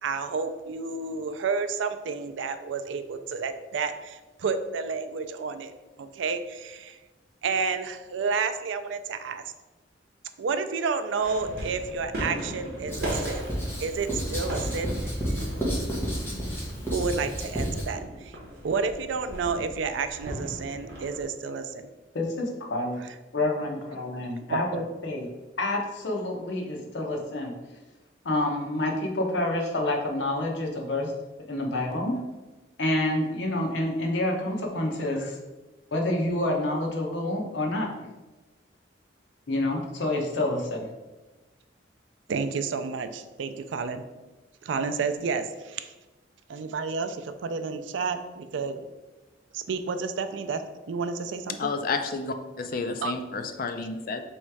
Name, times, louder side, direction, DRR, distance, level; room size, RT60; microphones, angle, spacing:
voice 1, 0.0-5.7 6.0-7.0 7.4-9.4 10.4-13.5 13.8-14.9 16.9-18.4 18.6-21.9 23.0-23.1 24.5-24.8 42.3-44.0 44.6-45.9 46.5-48.8 49.5-50.6 50.9-51.7 53.0-53.1, right 5 dB, 75° right, 9 dB, 0.4 m, -30 dB
sound 1, 11.2-21.2, right 1 dB, 55° right, 1.0 m, -38 dB
Writing, 12.9-17.9, equal, 10° left, 0.9 m, -31 dB
voice 2, 22.1-23.0 23.3-25.3 25.6-27.5 28.2-31.1 31.5-32.2 32.8-35.4 35.9-37.9 39.5-40.9, left 1 dB, 70° left, 0 dB, 0.8 m, -28 dB
voice 3, 51.6-54.2, left 4 dB, 45° left, 6 dB, 0.4 m, -31 dB
3.2 x 3.1 x 4.7 m, 1.2 s
head